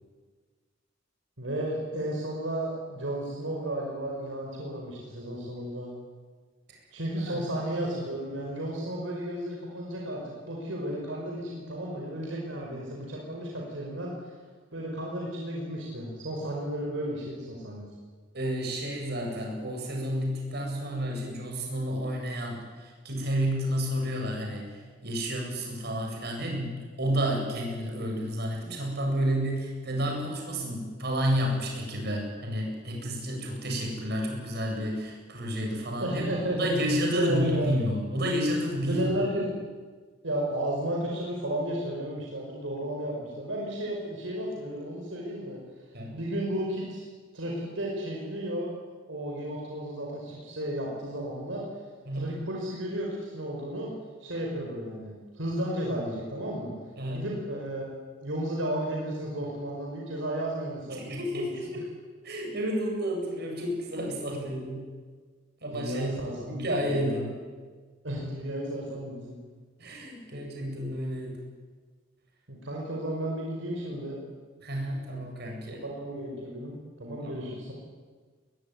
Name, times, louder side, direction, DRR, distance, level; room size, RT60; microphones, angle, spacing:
voice 1, 1.4-5.9 6.9-14.3 14.7-17.9 36.0-37.7 38.9-39.6 40.2-45.6 46.1-47.1 47.3-48.7 49.1-51.6 52.1-53.9 54.2-56.7 57.1-57.9 58.2-61.7 65.7-67.3 68.0-69.4 72.5-74.2 75.8-77.7, right 1 dB, 80° right, -2 dB, 5.5 m, -33 dB
voice 2, 18.3-36.2 36.6-39.1 45.9-46.2 52.1-52.4 57.0-57.3 60.9-61.9 62.2-64.9 65.6-67.3 69.8-71.4 74.6-75.8 77.4-77.5, equal, 60° right, 1 dB, 7.8 m, -31 dB
21.5 x 21.0 x 9.7 m, 1.5 s
head